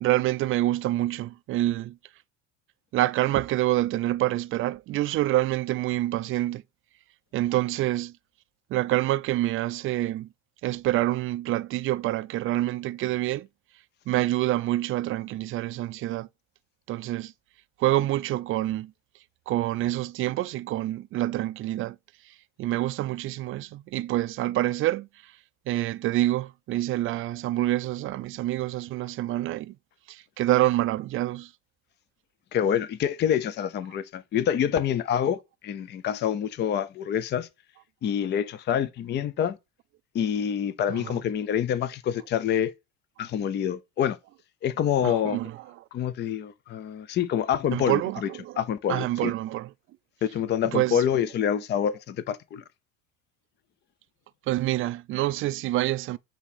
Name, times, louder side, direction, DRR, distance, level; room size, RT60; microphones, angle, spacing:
voice 1, 0.0-2.0 2.9-6.6 7.3-8.1 8.7-10.3 10.6-13.5 14.1-16.3 16.9-17.3 17.8-18.9 19.5-22.0 22.6-25.3 25.7-29.8 30.1-31.5 40.9-41.2 45.0-45.6 47.7-48.6 48.9-49.7 50.6-51.0 54.5-56.2, right 15 dB, 40° right, 0.4 m, -27 dB
voice 2, 32.5-37.5 38.0-39.6 40.1-42.7 43.2-44.2 44.6-45.4 45.9-48.3 48.6-49.3 50.2-52.6, left 9 dB, 35° left, 0.6 m, -27 dB
7.9 x 2.9 x 4.1 m
supercardioid pair, 120°, 32 cm